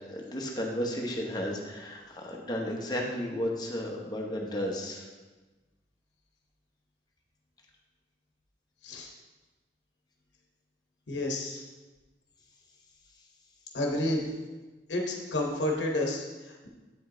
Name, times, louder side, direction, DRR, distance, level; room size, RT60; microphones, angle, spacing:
voice 1, 0.1-5.0, equal, 25° left, 0 dB, 1.0 m, -33 dB
voice 2, 11.1-11.6 13.7-14.3 14.9-16.7, left 1 dB, 80° left, 1 dB, 1.0 m, -30 dB
8.8 x 5.2 x 3.8 m, 1.2 s
head